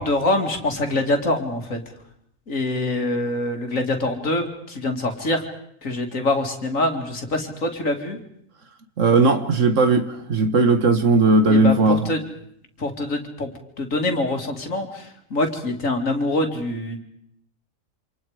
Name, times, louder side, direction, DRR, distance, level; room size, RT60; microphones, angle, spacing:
voice 1, 0.0-1.8 2.5-5.5 5.8-8.2 11.5-12.2 12.8-17.0, left 2 dB, 80° left, 2.9 m, -25 dB
voice 2, 9.0-12.1, right 3 dB, 70° right, 1.9 m, -17 dB
28.0 x 26.5 x 5.0 m
omnidirectional pair, 1.3 m